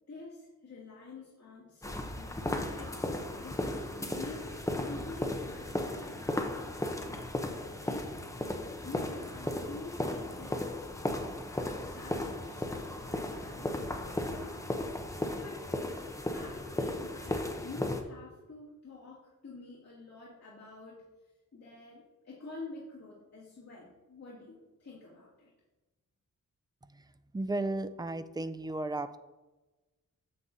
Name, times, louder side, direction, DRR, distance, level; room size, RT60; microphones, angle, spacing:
voice 1, 0.1-6.6 7.1-8.1 8.5-14.6 15.4-15.7 16.3-25.5, left 3 dB, 55° left, -9 dB, 2.4 m, -48 dB
sound 1, 1.8-18.0, left 1 dB, 10° left, 0.7 m, -36 dB
voice 2, 27.3-29.2, right 2 dB, 15° right, 11 dB, 0.3 m, -34 dB
9.7 x 7.3 x 2.7 m, 1.1 s
wide cardioid pair, 140°, 32 cm